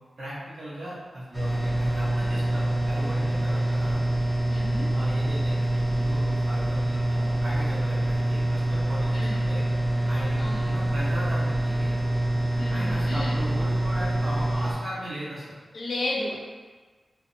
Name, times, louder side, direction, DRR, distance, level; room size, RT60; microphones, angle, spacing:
voice 1, 0.2-4.0 4.9-9.7 10.0-12.0 12.7-15.6, equal, 65° right, -8 dB, 0.9 m, -37 dB
sound 1, 1.3-14.7, right 1 dB, ahead, 0.4 m, -25 dB
voice 2, 4.5-4.9 9.1-9.5 10.4-10.8 12.6-13.4 15.7-16.4, left 2 dB, 60° left, -3 dB, 0.5 m, -33 dB
2.6 x 2.1 x 2.5 m, 1.3 s
wide cardioid pair, 115°, 0 cm